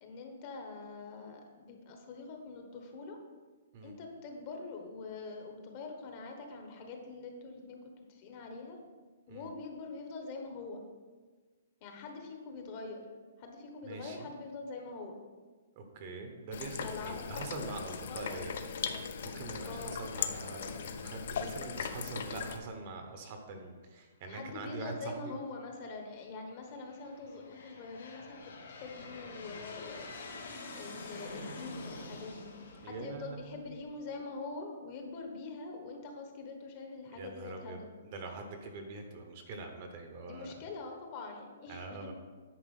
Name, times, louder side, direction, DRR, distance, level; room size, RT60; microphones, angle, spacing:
voice 1, 0.0-3.2 3.8-8.8 9.3-10.8 11.8-13.0 13.4-15.2 16.8-17.5 18.0-19.1 19.6-20.0 24.3-30.1 30.7-32.5 32.8-37.9 40.2-42.1, left 3 dB, 25° left, 3 dB, 1.1 m, -44 dB
voice 2, 13.8-14.3 15.8-18.5 19.2-25.3 32.8-33.6 37.1-37.8 38.1-40.5 41.7-42.1, right 3 dB, 30° right, 4 dB, 1.0 m, -43 dB
sound 1, 16.5-22.6, left 6 dB, 50° left, 0.7 m, -39 dB
Aircraft, 25.2-25.7 26.4-34.0, left 2 dB, 80° left, 2.4 m, -47 dB
10.0 x 4.8 x 6.5 m, 1.4 s
hypercardioid pair, 175°, 0 cm